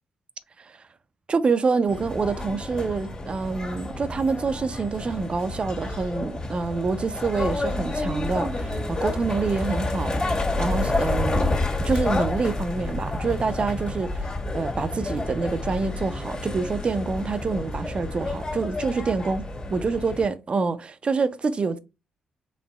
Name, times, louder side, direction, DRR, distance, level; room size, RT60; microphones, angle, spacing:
voice 1, 1.3-19.4 19.7-21.8, right 4 dB, 40° right, 0.5 m, -27 dB
sound 1, 1.9-20.3, left 2 dB, 35° left, 1.5 m, -29 dB
4.2 x 3.2 x 2.3 m
hypercardioid pair, 45°, 3 cm